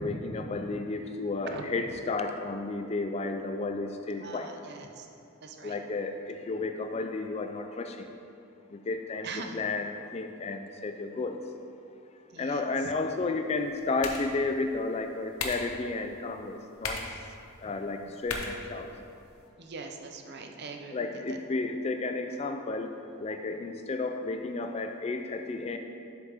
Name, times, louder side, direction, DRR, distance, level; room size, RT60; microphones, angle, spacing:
voice 1, 0.0-4.5 5.6-8.1 8.7-11.4 12.4-17.0 17.6-18.9 20.9-22.9 23.2-25.8, left 3 dB, 30° left, 6 dB, 0.3 m, -32 dB
voice 2, 4.2-5.0 5.4-5.7 9.2-9.6 12.3-12.6 19.6-21.0, right 3 dB, 50° right, 4 dB, 0.6 m, -41 dB
sound 1, 13.5-19.5, left 3 dB, 80° left, 0.9 m, -41 dB
7.7 x 7.1 x 3.5 m, 2.6 s
head